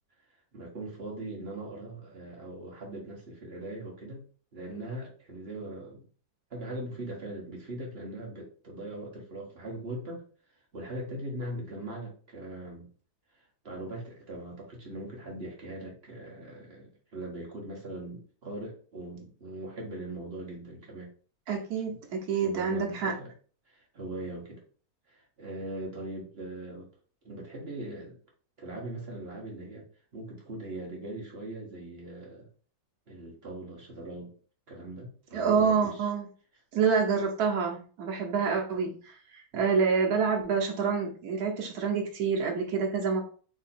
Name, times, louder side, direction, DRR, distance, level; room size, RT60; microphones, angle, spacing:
voice 1, 0.5-4.2 4.5-6.0 6.5-10.2 10.7-12.9 13.3-21.1 21.9-22.0 22.4-23.3 23.7-24.6 25.1-26.9 27.2-28.2 28.6-29.9 30.1-32.5 33.1-34.3 34.7-36.1 39.5-39.6, right 1 dB, 40° right, -2 dB, 1.3 m, -40 dB
voice 2, 21.5-23.1 35.3-36.3 36.7-43.2, right 5 dB, 75° right, 0 dB, 1.4 m, -27 dB
3.8 x 2.7 x 4.2 m, 0.41 s
omnidirectional pair, 1.6 m